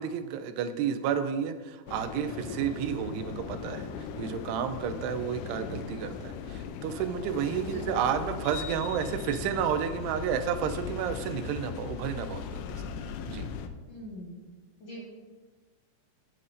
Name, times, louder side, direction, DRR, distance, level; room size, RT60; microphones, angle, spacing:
voice 1, 0.0-3.9 4.2-12.8 13.3-13.5, right 8 dB, 85° right, 9 dB, 2.7 m, -31 dB
sound 1, 1.9-13.7, left 6 dB, 90° left, 2.7 m, -38 dB
voice 2, 5.4-5.8 7.6-8.3 13.9-14.3 14.8-15.0, equal, 50° left, -7 dB, 2.6 m, -42 dB
13.0 x 7.8 x 2.6 m, 1.3 s
omnidirectional pair, 4.7 m